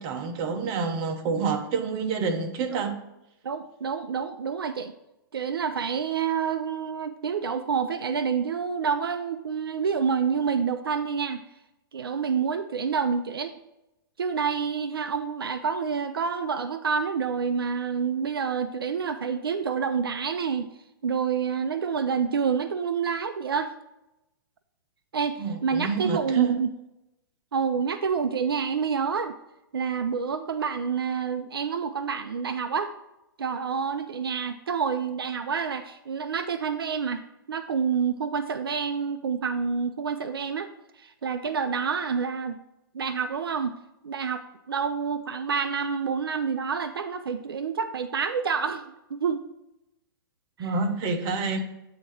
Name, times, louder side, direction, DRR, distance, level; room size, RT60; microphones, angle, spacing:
voice 1, 0.0-3.0 25.4-26.6 50.6-51.6, right 5 dB, 40° right, 5 dB, 1.0 m, -27 dB
voice 2, 3.4-4.9 5.3-11.4 11.9-13.5 14.2-20.7 21.0-23.7 25.1-26.7 27.5-29.4 29.7-32.9 33.4-37.2 37.5-40.7 41.0-42.6 42.9-43.8 44.0-49.5 50.6-50.7, right 6 dB, 85° right, 10 dB, 0.4 m, -28 dB
8.4 x 2.9 x 6.2 m, 0.91 s
hypercardioid pair, 115°, 12 cm